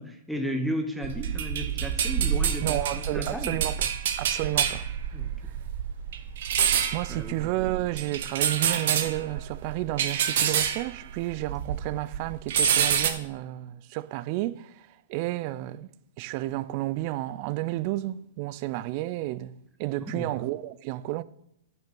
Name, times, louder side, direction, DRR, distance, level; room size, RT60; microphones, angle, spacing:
voice 1, 0.0-2.8 3.1-3.6 5.1-5.3 7.1-7.4 20.1-20.4, equal, ahead, 1.0 m, -33 dB
sound 1, 1.0-11.9 12.1-13.1, right 8 dB, 65° right, 1.1 m, -27 dB
voice 2, 2.6-3.9 4.2-4.9 6.9-15.9 16.2-19.5 19.8-21.2, right 17 dB, 45° right, 0.4 m, -31 dB
8.9 x 5.8 x 6.0 m
hypercardioid pair, 125°, 0 cm